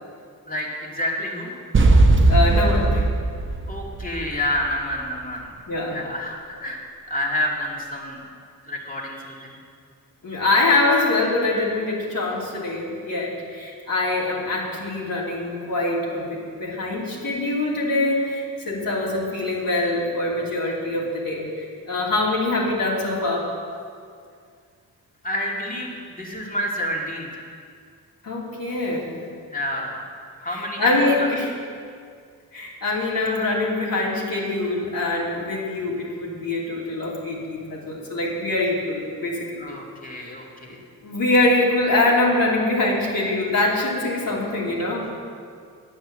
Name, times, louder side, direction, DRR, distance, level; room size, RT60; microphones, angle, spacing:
voice 1, 0.5-1.5 3.7-5.5 5.9-8.2 8.6-9.6 25.2-27.4 29.5-30.0 30.4-31.3 39.6-40.8, left 1 dB, 20° left, -2 dB, 2.4 m, -29 dB
sound 1, 1.7-4.7, right 2 dB, 30° right, 0.9 m, -18 dB
voice 2, 2.3-3.0 5.7-6.0 10.2-23.5 28.2-29.1 30.4-31.5 32.5-39.7 40.1-40.3 41.0-45.1, left 2 dB, 60° left, -4 dB, 2.9 m, -24 dB
9.4 x 8.2 x 7.6 m, 2.2 s
cardioid pair, 85°, 38 cm